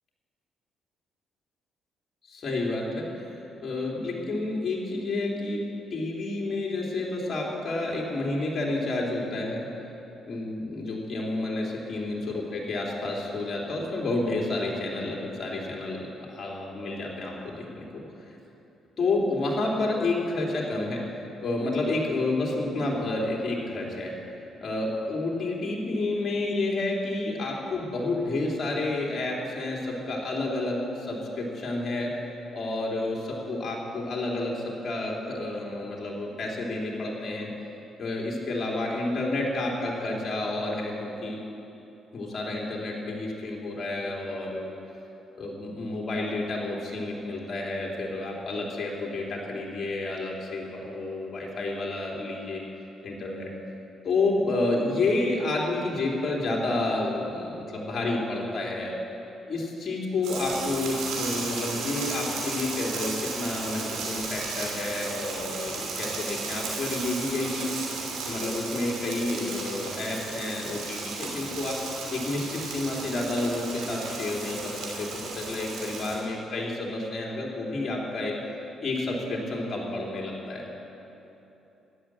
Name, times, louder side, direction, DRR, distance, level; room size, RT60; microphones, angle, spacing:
voice 1, 2.2-9.6 10.2-18.4 19.0-21.0 21.4-24.1 24.6-32.1 32.5-37.5 38.0-41.4 42.1-44.8 45.3-52.6 53.0-53.5 54.0-58.9 59.5-67.7 68.2-71.8 72.1-78.3 78.8-80.7, left 2 dB, 45° left, -3 dB, 3.2 m, -30 dB
sound 1, 60.2-76.2, right 4 dB, 90° right, 2.8 m, -34 dB
13.0 x 9.9 x 7.5 m, 2.9 s
cardioid pair, 90°, 0 cm